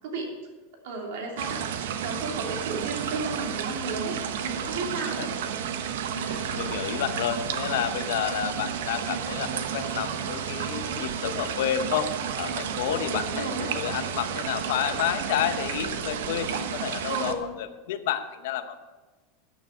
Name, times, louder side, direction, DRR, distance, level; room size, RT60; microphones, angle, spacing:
voice 1, 0.0-0.3 0.8-5.3 12.9-13.7 17.1-17.4, right 3 dB, 60° right, 0 dB, 3.1 m, -33 dB
sound 1, 1.4-17.3, right 8 dB, 85° right, 1.0 m, -32 dB
voice 2, 6.1-18.8, left 10 dB, 65° left, 10 dB, 0.9 m, -30 dB
13.5 x 9.4 x 4.5 m, 1.2 s
supercardioid pair, 180°, 0 cm